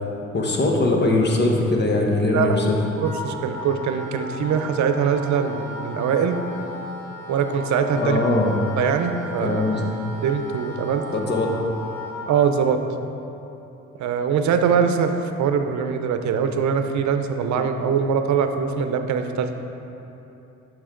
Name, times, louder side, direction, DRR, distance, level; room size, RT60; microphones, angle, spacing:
voice 1, 0.3-2.8 7.9-8.6 9.4-9.9 11.1-11.5, left 2 dB, 35° left, 0 dB, 1.3 m, -21 dB
Wind instrument woodwind instrument, 2.5-12.5, left 1 dB, 10° left, 1.5 m, -36 dB
voice 2, 3.0-6.4 7.3-8.2 8.8-9.6 10.2-11.0 12.3-12.8 14.0-15.1 15.4-19.5, right 7 dB, 70° right, 7 dB, 0.7 m, -22 dB
9.4 x 6.2 x 3.8 m, 2.9 s
cardioid pair, 90°, 30 cm